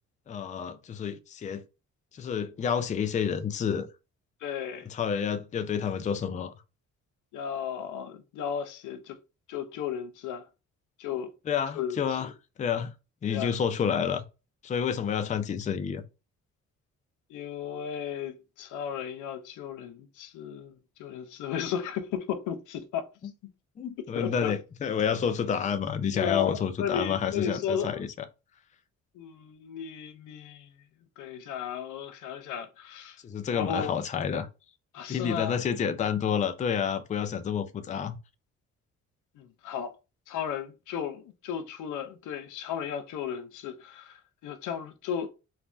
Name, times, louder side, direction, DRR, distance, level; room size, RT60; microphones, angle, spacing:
voice 1, 0.3-1.6 2.1-3.9 4.9-6.5 11.5-12.3 12.6-12.9 13.2-14.2 14.6-16.0 23.8-28.1 33.2-34.5 35.1-38.2, left 7 dB, 25° left, 0.3 m, -29 dB
voice 2, 4.4-4.9 7.3-9.2 9.5-10.4 11.0-11.3 11.7-12.3 13.3-13.5 17.3-23.3 24.2-24.5 26.1-28.0 29.2-30.7 31.2-33.2 33.5-34.0 34.9-35.6 39.4-39.9 40.3-45.3, left 8 dB, 80° left, 0.5 m, -35 dB
3.2 x 2.1 x 2.4 m
cardioid pair, 90°, 30 cm